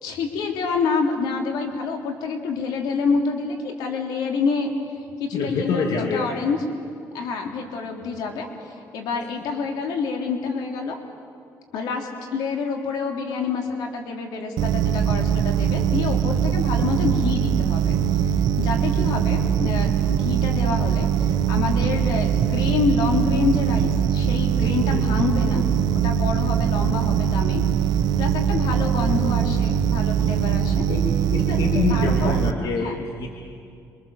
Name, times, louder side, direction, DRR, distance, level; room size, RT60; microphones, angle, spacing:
voice 1, 0.0-4.7 5.2-6.6 7.1-11.0 11.7-18.0 18.6-25.6 26.0-27.6 28.2-30.8 31.5-31.6 31.9-32.4 32.8-33.0, left 4 dB, 90° left, 2 dB, 3.5 m, -27 dB
voice 2, 5.3-6.3 24.9-25.0 28.8-29.2 30.9-31.0 31.3-33.3, left 4 dB, 75° left, 0 dB, 2.7 m, -26 dB
sound 1, 14.6-32.5, right 9 dB, 75° right, 1.2 m, -22 dB
28.0 x 25.0 x 7.3 m, 2.4 s
cardioid pair, 110°, 7 cm